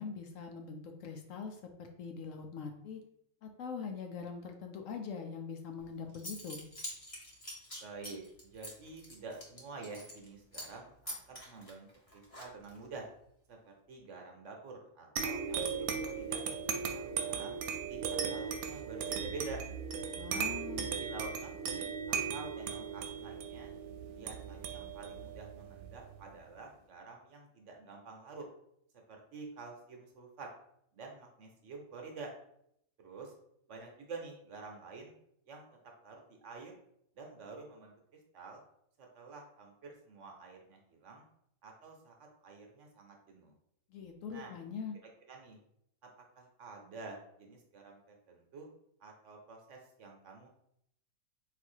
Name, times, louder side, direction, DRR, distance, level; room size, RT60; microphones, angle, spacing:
voice 1, 0.0-3.0 3.4-6.6 20.1-20.9 43.9-45.0, left 6 dB, 70° left, 4 dB, 0.9 m, -43 dB
Zipper (clothing) / Coin (dropping), 5.8-5.9 6.1-10.3 10.5-10.8 11.1-12.8, equal, 30° left, 0.8 m, -45 dB
voice 2, 7.8-11.9 12.1-13.1 13.5-16.4 16.9-17.5 17.9-19.6 20.3-20.5 20.9-23.7 24.1-28.4 29.1-30.5 30.9-32.3 33.0-33.3 33.7-35.1 35.5-35.7 36.0-36.7 37.1-37.9 38.3-38.6 39.0-41.2 41.6-43.5 44.3-44.5 45.3-45.6 46.4-48.7 49.0-50.5, right 4 dB, 60° right, 1 dB, 1.1 m, -48 dB
sound 1, 15.2-26.2, right 6 dB, 85° right, 1.1 m, -37 dB
4.1 x 2.6 x 4.4 m, 0.72 s
omnidirectional pair, 1.5 m